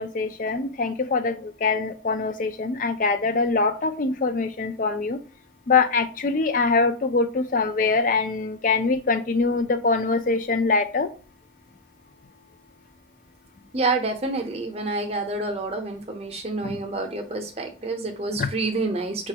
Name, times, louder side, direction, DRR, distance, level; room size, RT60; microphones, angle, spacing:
voice 1, 0.0-5.2 5.7-11.1 16.6-16.8 18.3-18.5, left 4 dB, 45° left, 9 dB, 0.4 m, -23 dB
voice 2, 13.7-19.3, right 3 dB, 35° right, 4 dB, 0.6 m, -28 dB
4.9 x 2.4 x 2.8 m, 0.36 s
head